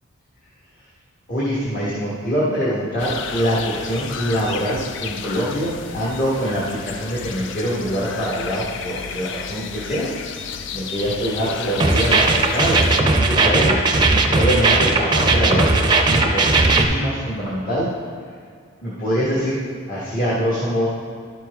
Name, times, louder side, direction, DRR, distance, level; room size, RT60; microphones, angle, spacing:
voice 1, 1.3-10.1 10.7-13.7 14.2-17.9 18.8-19.6 19.9-20.9, equal, 45° left, -8 dB, 1.4 m, -24 dB
sound 1, 3.0-13.0, left 7 dB, 60° left, 0.4 m, -33 dB
sound 2, 11.8-16.8, right 3 dB, 25° right, 0.5 m, -17 dB
10.5 x 5.9 x 3.5 m, 2.1 s
head